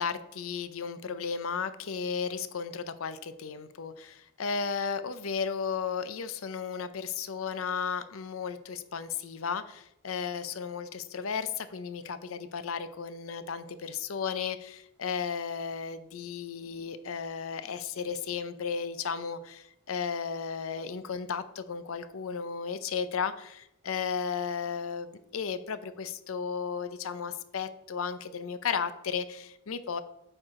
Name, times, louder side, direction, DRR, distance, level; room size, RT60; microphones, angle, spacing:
voice 1, 0.0-30.0, left 6 dB, 85° left, 12 dB, 0.6 m, -34 dB
8.8 x 4.7 x 3.7 m, 0.81 s
head